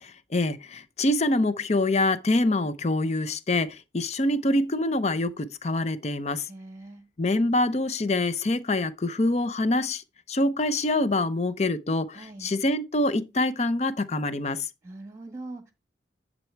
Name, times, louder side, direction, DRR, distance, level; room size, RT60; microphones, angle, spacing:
voice 1, 0.0-6.5 7.2-14.7, left 2 dB, 40° left, 0.6 m, -25 dB
voice 2, 6.5-7.0 12.1-12.5 14.8-15.7, right 2 dB, 15° right, 1.6 m, -41 dB
10.5 x 4.0 x 4.5 m
head